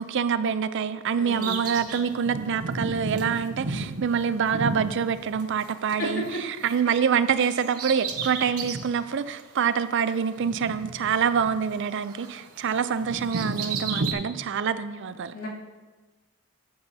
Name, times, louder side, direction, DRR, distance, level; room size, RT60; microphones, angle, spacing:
voice 1, 0.0-15.3, right 7 dB, 55° right, 13 dB, 0.4 m, -26 dB
voice 2, 1.2-1.5 6.0-6.4 15.3-15.5, equal, 80° left, -6 dB, 2.7 m, -32 dB
Bird vocalization bird call bird song, 1.3-5.9 6.2-8.9 9.4-9.5 10.4-11.8 12.1-14.1, right 4 dB, 85° right, 1.0 m, -33 dB
13.0 x 7.9 x 2.8 m, 1.3 s
head